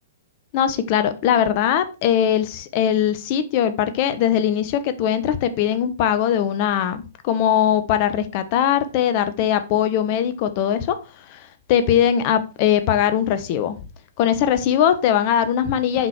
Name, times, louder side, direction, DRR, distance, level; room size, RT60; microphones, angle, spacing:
voice 1, 0.5-11.0 11.3-13.8 14.2-16.1, left 9 dB, 40° left, 1.3 m, -20 dB
8.0 x 6.5 x 4.5 m
figure-of-eight pair, 115°, 0 cm